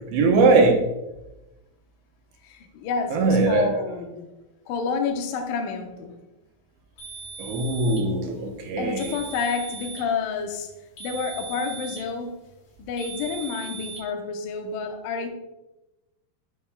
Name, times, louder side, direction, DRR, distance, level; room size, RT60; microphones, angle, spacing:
voice 1, 0.1-0.8 3.1-3.7 7.4-9.1, right 3 dB, 80° right, 2 dB, 3.1 m, -20 dB
voice 2, 2.4-4.4 4.7-6.2 8.8-10.7 11.0-12.3 12.8-15.3, left 5 dB, 80° left, 4 dB, 2.0 m, -29 dB
sound 1, 7.0-8.1 9.0-10.1 11.0-12.1 13.0-14.0, right 5 dB, 55° left, 3.3 m, -39 dB
11.5 x 5.8 x 2.2 m, 0.97 s
omnidirectional pair, 5.0 m